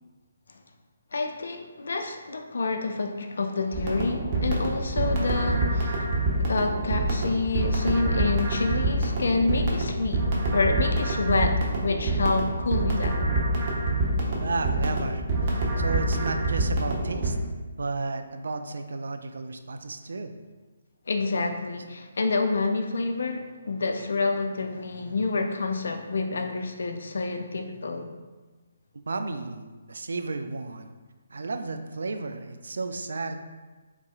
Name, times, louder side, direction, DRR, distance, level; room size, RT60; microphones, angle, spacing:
voice 1, 1.1-6.1 6.5-10.3 10.5-13.2 21.1-28.1, left 3 dB, 60° left, 5 dB, 0.4 m, -28 dB
sound 1, 3.7-17.3, right 2 dB, 30° right, 0.8 m, -26 dB
voice 2, 14.4-17.4 17.8-20.3 29.1-30.9 31.3-33.4, right 3 dB, 65° right, 7 dB, 0.3 m, -33 dB
4.0 x 3.6 x 2.3 m, 1.3 s
figure-of-eight pair, 140°, 0 cm